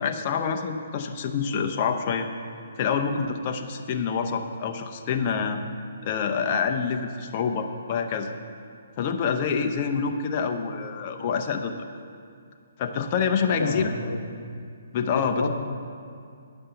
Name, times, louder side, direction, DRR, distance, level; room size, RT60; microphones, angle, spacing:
voice 1, 0.0-2.3 2.8-5.6 6.0-8.3 9.0-11.8 12.8-13.9 14.9-15.5, left 6 dB, 35° left, 5 dB, 0.7 m, -27 dB
voice 2, 13.5-14.3 15.0-15.5, left 3 dB, 85° left, 6 dB, 0.9 m, -30 dB
10.0 x 5.3 x 6.9 m, 2.3 s
hypercardioid pair, 160°, 0 cm